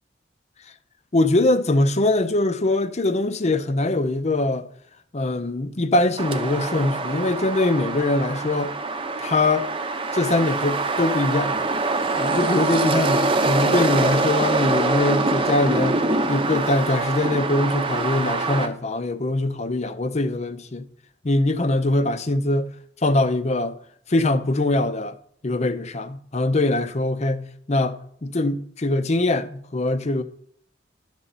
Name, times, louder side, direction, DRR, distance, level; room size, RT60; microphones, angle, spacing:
voice 1, 1.1-4.7 5.1-8.7 9.2-9.7 10.1-11.5 12.2-20.9 21.2-22.7 23.0-23.7 24.1-30.2, left 2 dB, 40° left, 0.7 m, -22 dB
sound 1, 6.2-18.7, right 3 dB, 30° right, 0.8 m, -24 dB
11.0 x 7.0 x 4.1 m
head